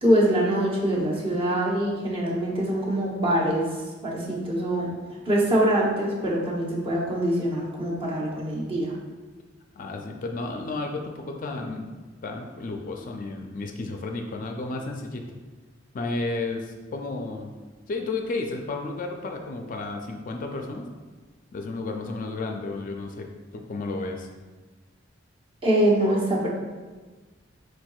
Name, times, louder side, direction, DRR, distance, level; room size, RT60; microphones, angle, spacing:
voice 1, 0.0-3.7 4.0-4.9 5.2-8.9 25.6-26.5, right 1 dB, 30° right, -4 dB, 0.9 m, -24 dB
voice 2, 9.8-11.9 12.2-15.2 15.9-17.5 17.9-20.9 21.5-23.3 23.5-24.3, left 3 dB, 45° left, 3 dB, 0.4 m, -32 dB
4.5 x 4.4 x 2.3 m, 1.3 s
head